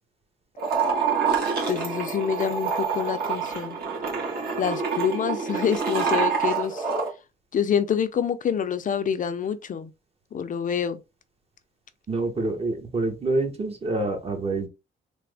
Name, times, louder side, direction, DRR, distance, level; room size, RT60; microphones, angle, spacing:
sound 1, 0.6-7.1, right 6 dB, 50° right, 1.5 m, -26 dB
voice 1, 1.7-3.8 4.6-6.9 7.5-9.9 10.3-11.0, left 7 dB, 40° left, 0.5 m, -26 dB
voice 2, 12.1-14.7, right 2 dB, 30° right, 1.1 m, -27 dB
3.4 x 2.1 x 3.4 m
cardioid pair, 90°, 20 cm